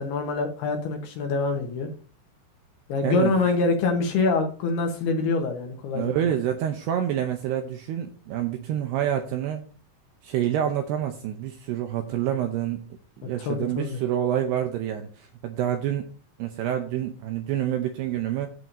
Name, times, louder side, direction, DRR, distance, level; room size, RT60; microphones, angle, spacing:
voice 1, 0.0-1.9 2.9-6.1 13.4-14.0, left 3 dB, 65° left, 4 dB, 2.8 m, -25 dB
voice 2, 5.9-9.6 10.2-12.8 13.2-16.1 16.4-18.5, right 10 dB, 85° right, 6 dB, 2.4 m, -27 dB
15.0 x 7.7 x 2.8 m, 0.38 s
omnidirectional pair, 5.6 m